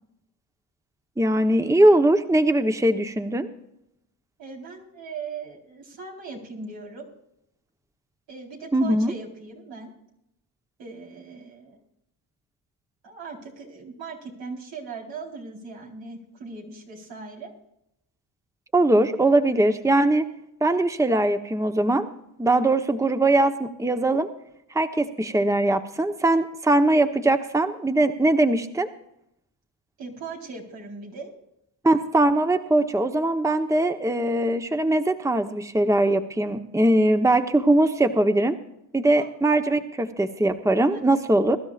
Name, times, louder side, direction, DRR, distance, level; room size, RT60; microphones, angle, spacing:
voice 1, 1.2-3.5 8.7-9.1 18.7-20.3 20.6-22.1 22.4-24.3 24.7-28.9 31.8-38.6 38.9-41.6, right 1 dB, 5° right, 7 dB, 1.0 m, -21 dB
voice 2, 4.4-7.1 8.3-9.9 10.8-11.8 13.0-17.5 30.0-31.3 39.2-39.3 39.7-39.8 40.9-41.0, right 4 dB, 80° right, -2 dB, 4.2 m, -39 dB
22.5 x 12.5 x 2.5 m, 0.80 s
cardioid pair, 60°, 44 cm